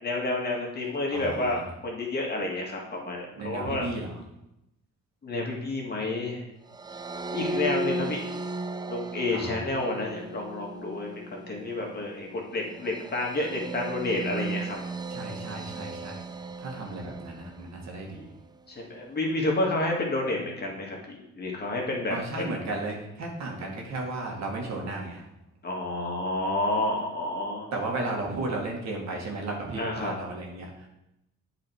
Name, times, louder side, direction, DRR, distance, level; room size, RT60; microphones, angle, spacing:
voice 1, 0.0-3.8 5.2-6.5 7.3-8.2 8.9-14.8 18.7-22.5 25.6-27.7 29.8-30.1, left 2 dB, 35° left, -1 dB, 2.0 m, -30 dB
voice 2, 1.1-1.6 3.4-4.1 9.3-9.6 15.1-16.2 16.6-18.3 22.1-25.2 27.7-30.9, right 2 dB, 65° right, 0 dB, 1.9 m, -34 dB
sound 1, 6.7-18.1, right 2 dB, 15° right, 0.4 m, -36 dB
8.3 x 4.2 x 4.7 m, 0.86 s
cardioid pair, 90°, 30 cm